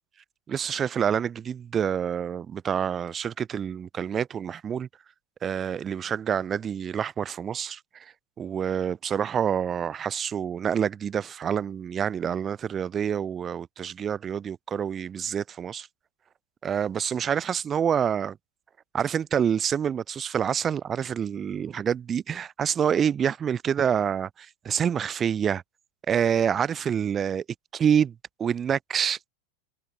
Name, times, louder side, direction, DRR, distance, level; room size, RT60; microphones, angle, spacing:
voice 1, 0.5-4.9 5.4-7.8 8.4-15.9 16.6-18.4 18.9-25.6 26.1-27.4 27.7-28.1 28.4-29.3, right 8 dB, 25° right, 1.1 m, -27 dB
figure-of-eight pair, 90°, 0 cm